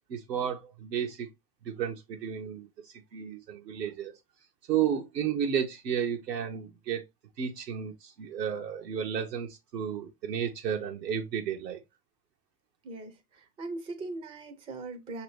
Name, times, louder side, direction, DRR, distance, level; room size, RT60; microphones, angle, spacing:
voice 1, 0.1-1.3 1.6-4.1 4.7-7.0 7.4-11.8, right 8 dB, 80° right, 0.9 m, -32 dB
voice 2, 12.8-15.2, right 2 dB, 15° right, 0.5 m, -40 dB
6.0 x 2.8 x 3.1 m
hypercardioid pair, 105°, 49 cm